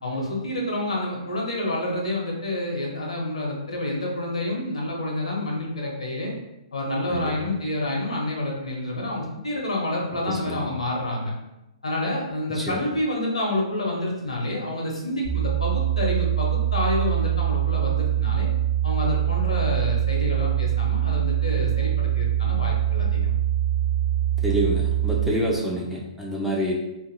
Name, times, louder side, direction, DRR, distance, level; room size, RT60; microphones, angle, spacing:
voice 1, 0.0-6.3 6.7-11.3 11.8-18.5 18.8-23.3, left 1 dB, 80° left, -1 dB, 0.8 m, -28 dB
voice 2, 10.2-10.7 12.5-12.8 24.4-26.7, equal, 5° right, -4 dB, 0.5 m, -27 dB
sound 1, 15.2-25.3, right 11 dB, 65° right, 0.6 m, -23 dB
2.6 x 2.6 x 2.6 m, 0.95 s
figure-of-eight pair, 120°, 3 cm